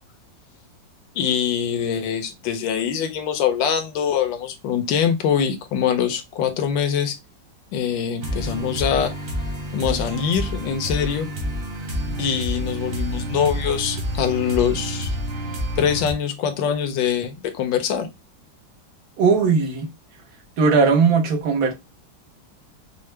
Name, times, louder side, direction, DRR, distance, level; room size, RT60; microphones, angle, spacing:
voice 1, 1.2-7.1 7.7-9.1 9.7-11.3 12.2-15.1 15.8-18.1, left 8 dB, 85° left, 1.4 m, -23 dB
sound 1, 8.2-16.1, equal, 90° right, 2.2 m, -28 dB
voice 2, 19.2-19.9 20.6-21.7, right 5 dB, 65° right, 1.3 m, -18 dB
5.5 x 2.1 x 3.1 m
omnidirectional pair, 2.0 m